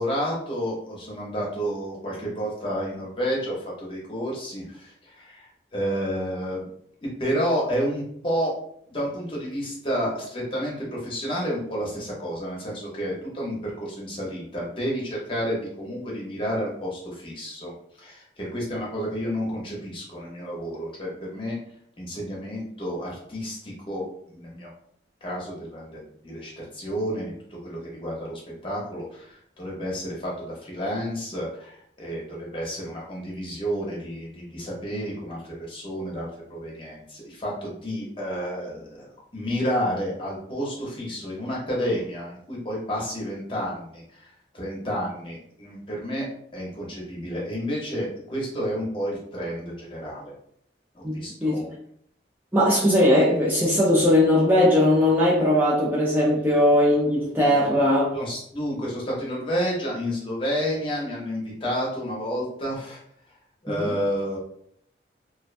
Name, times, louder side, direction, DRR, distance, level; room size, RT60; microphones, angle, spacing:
voice 1, 0.0-6.6 7.2-8.6 8.9-17.7 18.0-21.6 22.0-24.7 25.2-39.1 39.3-44.3 44.5-46.3 46.5-50.3 51.1-51.7 58.1-63.0 63.6-64.4, equal, 30° left, -4 dB, 0.7 m, -30 dB
voice 2, 51.0-51.6 52.5-58.1 63.8-63.9, left 1 dB, 10° right, -7 dB, 0.4 m, -19 dB
2.4 x 2.2 x 2.4 m, 0.68 s
head